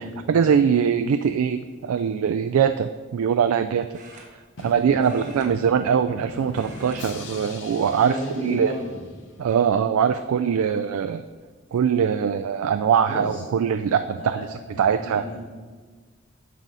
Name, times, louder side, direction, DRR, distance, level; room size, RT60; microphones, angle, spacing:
voice 1, 0.0-4.2 4.6-8.7 9.4-11.2 11.7-15.2, right 7 dB, 85° right, 9 dB, 0.3 m, -22 dB
sound 1, 2.0-2.3 3.9-4.7 5.0-6.2 6.4-7.0 7.3-7.6 8.4-8.9 9.5-9.6 11.0-11.1 11.4-11.8, right 2 dB, 35° right, 1.3 m, -48 dB
Drum, 4.6-9.4, left 2 dB, 60° left, 0.9 m, -40 dB
voice 2, 4.9-5.5 8.0-9.0 13.1-13.4 14.2-14.4 14.7-15.5, equal, 35° left, -12 dB, 2.5 m, -33 dB
9.6 x 6.2 x 3.9 m, 1.5 s
head